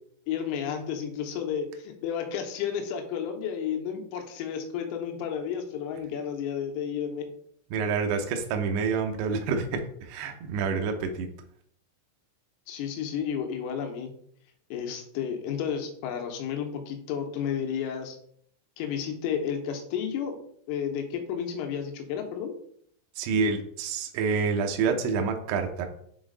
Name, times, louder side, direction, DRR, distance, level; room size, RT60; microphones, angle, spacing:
voice 1, 0.3-7.3 12.7-14.1 14.7-18.2 18.8-20.4 20.7-22.6, left 8 dB, 85° left, 4 dB, 3.4 m, -32 dB
voice 2, 7.7-9.8 10.1-11.3 23.2-25.9, right 5 dB, 85° right, 4 dB, 2.3 m, -27 dB
7.2 x 4.0 x 3.8 m, 0.65 s
omnidirectional pair, 5.7 m